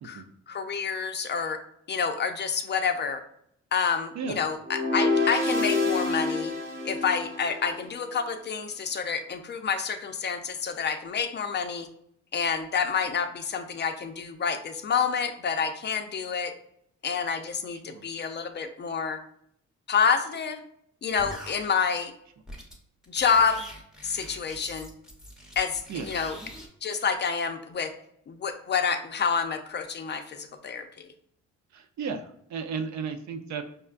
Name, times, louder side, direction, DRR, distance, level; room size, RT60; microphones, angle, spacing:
voice 1, 0.0-1.6 1.9-3.2 3.7-6.5 6.9-11.9 12.3-16.5 17.0-19.2 19.9-20.6 21.0-22.1 23.1-23.7 24.0-24.9 25.6-26.4 26.8-27.9 28.3-30.9, left 6 dB, 35° left, 6 dB, 0.4 m, -28 dB
sound 1, 4.6-7.9, left 3 dB, 35° right, 0.9 m, -27 dB
voice 2, 17.7-18.1 25.9-26.2 31.7-33.6, right 5 dB, 65° right, 7 dB, 0.5 m, -34 dB
sound 2, 21.2-21.6 22.5-22.8 23.0-26.7, equal, ahead, 0.8 m, -43 dB
5.5 x 2.2 x 2.4 m, 0.71 s
cardioid pair, 90°, 30 cm